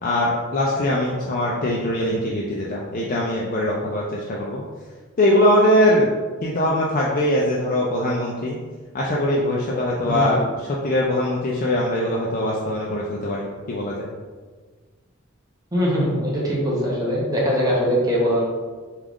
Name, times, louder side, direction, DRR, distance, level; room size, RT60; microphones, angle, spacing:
voice 1, 0.0-4.6 5.2-6.1 6.4-8.6 8.9-10.4 10.7-14.1, left 1 dB, 40° left, -4 dB, 0.4 m, -21 dB
voice 2, 10.0-10.4 15.7-18.4, equal, 15° right, -5 dB, 0.8 m, -22 dB
3.6 x 2.4 x 3.5 m, 1.4 s
head